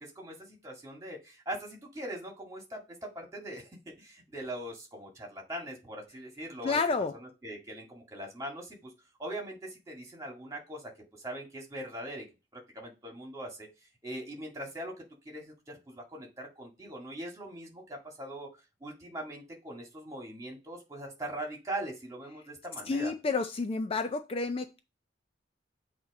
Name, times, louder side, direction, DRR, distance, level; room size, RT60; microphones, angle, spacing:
voice 1, 0.0-6.8 7.1-8.9 9.2-10.9 11.2-12.3 12.5-13.7 14.0-14.9 15.3-18.5 18.8-23.1, right 1 dB, 20° right, 1.9 m, -41 dB
voice 2, 6.6-7.1 22.9-24.8, left 4 dB, 35° left, 0.4 m, -30 dB
7.9 x 2.9 x 4.1 m
head